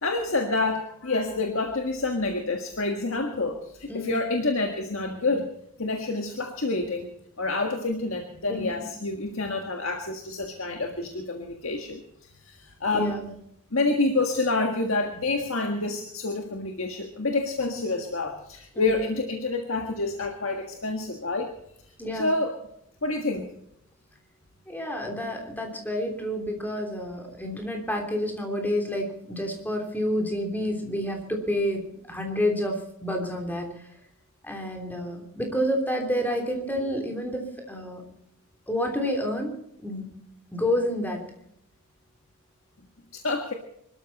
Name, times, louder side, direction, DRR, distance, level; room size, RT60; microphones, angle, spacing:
voice 1, 0.0-5.5 5.8-7.1 7.4-13.2 13.7-21.5 21.9-22.5 23.0-23.6 43.1-43.5, left 3 dB, 65° left, 4 dB, 1.7 m, -28 dB
voice 2, 8.5-8.9 12.9-13.3 18.7-19.0 22.0-22.3 24.7-31.8 32.1-33.7 34.4-37.4 37.7-38.0 38.7-39.5 39.8-40.1 40.5-41.2, equal, 10° left, 2 dB, 3.2 m, -29 dB
24.0 x 13.5 x 4.2 m, 0.75 s
head